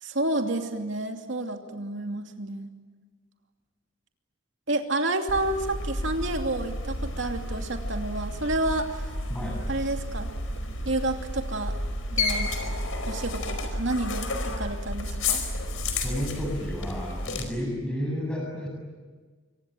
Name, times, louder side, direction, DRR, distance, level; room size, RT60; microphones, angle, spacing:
voice 1, 0.0-2.7 4.7-9.0 9.7-10.3 10.8-11.8 12.1-12.5 13.1-15.4, right 2 dB, 60° right, 4 dB, 2.8 m, -30 dB
sound 1, 5.3-17.4, left 2 dB, 85° left, 4.7 m, -31 dB
voice 2, 9.3-9.6 15.9-18.7, equal, 5° left, 0 dB, 7.4 m, -32 dB
25.5 x 25.0 x 9.2 m, 1.4 s
head